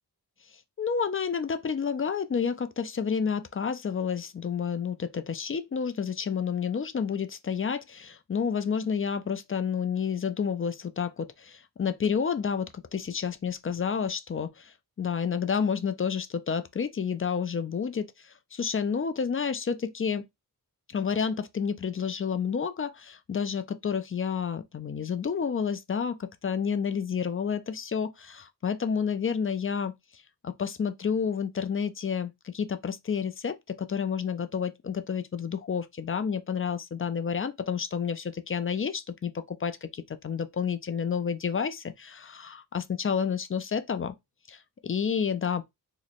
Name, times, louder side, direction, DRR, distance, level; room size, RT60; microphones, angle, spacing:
voice 1, 0.8-20.3 20.9-44.1 44.5-45.6, left 6 dB, 35° left, 0.4 m, -30 dB
3.1 x 2.2 x 4.0 m
wide cardioid pair, 95°, 38 cm